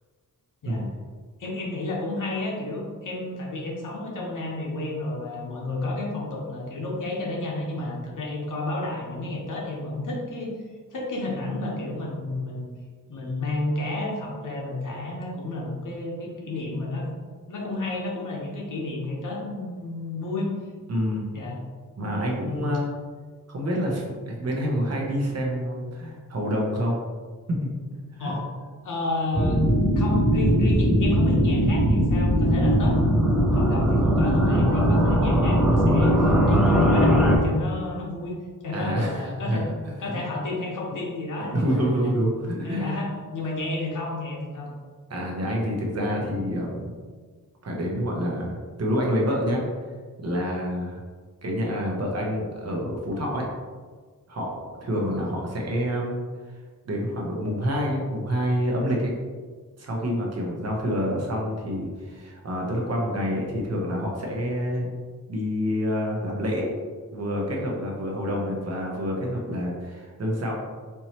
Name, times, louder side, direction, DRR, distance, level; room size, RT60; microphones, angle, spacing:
voice 1, 1.4-10.5 10.9-12.7 13.1-17.1 17.5-20.5 21.3-21.6 22.5-22.7 28.2-28.5 28.8-29.6 29.9-38.4 38.6-39.6 40.0-42.1 42.6-44.7, left 2 dB, 60° left, -2 dB, 1.0 m, -31 dB
voice 2, 20.9-21.3 22.0-22.9 23.5-27.0 27.5-27.6 28.1-28.4 38.7-40.1 41.5-43.1 45.1-47.0 47.6-49.6 50.2-51.0 51.4-53.5 54.3-56.2 56.9-59.1 59.8-64.9 65.3-66.7 67.1-70.5, equal, 45° right, -1 dB, 0.8 m, -27 dB
sound 1, 29.3-37.4, equal, 5° right, 0.4 m, -20 dB
4.5 x 2.9 x 2.9 m, 1.5 s
wide cardioid pair, 165°, 35 cm